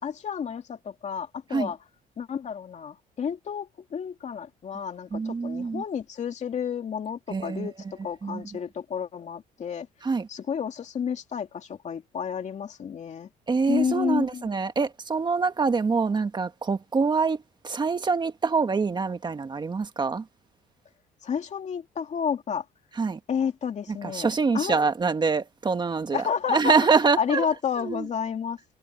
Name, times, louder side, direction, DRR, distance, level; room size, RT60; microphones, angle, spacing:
voice 1, 0.0-1.8 2.2-9.9 10.3-13.3 13.7-14.5 21.2-22.6 23.3-24.3 24.5-24.8 26.1-26.7 27.2-28.6, left 7 dB, 45° left, 2.6 m, -31 dB
voice 2, 5.1-5.8 7.3-7.7 8.2-8.4 10.0-10.3 13.5-20.2 23.0-23.2 24.0-26.2 26.5-27.5 27.8-28.0, right 4 dB, 25° right, 1.6 m, -25 dB
cardioid pair, 110°, 17 cm